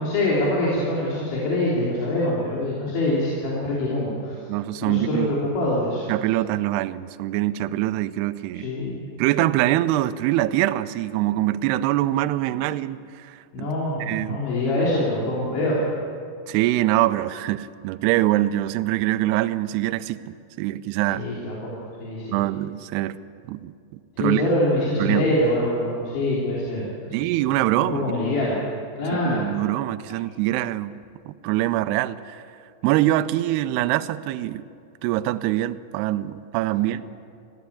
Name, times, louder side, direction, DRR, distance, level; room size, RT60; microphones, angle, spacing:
voice 1, 0.0-4.4 4.8-6.1 8.6-9.0 13.5-15.9 21.1-21.7 22.0-22.4 24.2-27.2 27.9-28.6 29.0-29.5 36.8-36.9, left 1 dB, 85° left, -6 dB, 5.7 m, -24 dB
voice 2, 4.5-5.3 6.1-8.7 9.2-13.7 14.0-14.4 16.5-20.2 20.6-21.2 22.3-23.2 23.5-24.4 25.0-25.3 27.1-28.1 29.1-30.9 31.3-32.4 32.8-34.7 35.0-37.0, right 15 dB, 80° right, 12 dB, 2.5 m, -24 dB
24.5 x 15.5 x 8.5 m, 2.4 s
omnidirectional pair, 5.1 m